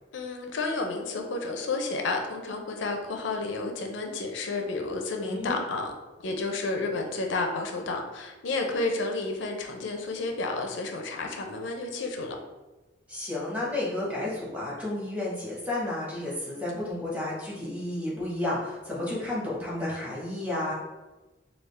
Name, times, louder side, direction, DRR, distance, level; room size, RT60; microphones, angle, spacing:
voice 1, 0.1-5.9 6.2-12.4, left 3 dB, 75° left, 3 dB, 0.5 m, -31 dB
voice 2, 5.2-5.6 13.1-20.7, left 1 dB, 10° right, -6 dB, 0.8 m, -32 dB
3.5 x 2.4 x 3.2 m, 1.1 s
head